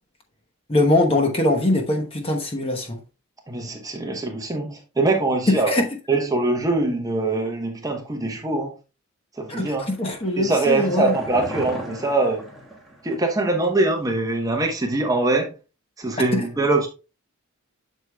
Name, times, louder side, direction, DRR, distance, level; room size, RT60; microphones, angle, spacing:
voice 1, 0.7-3.0 5.5-5.8 9.5-11.1 16.3-16.4, left 1 dB, 25° left, 1.0 m, -22 dB
voice 2, 3.5-5.7 6.1-8.7 9.3-9.9 10.4-12.5 13.0-15.6 16.0-16.9, right 2 dB, 15° right, 0.9 m, -23 dB
sound 1, 9.6-13.4 13.6-13.7, equal, ahead, 1.5 m, -36 dB
8.0 x 6.6 x 2.2 m
head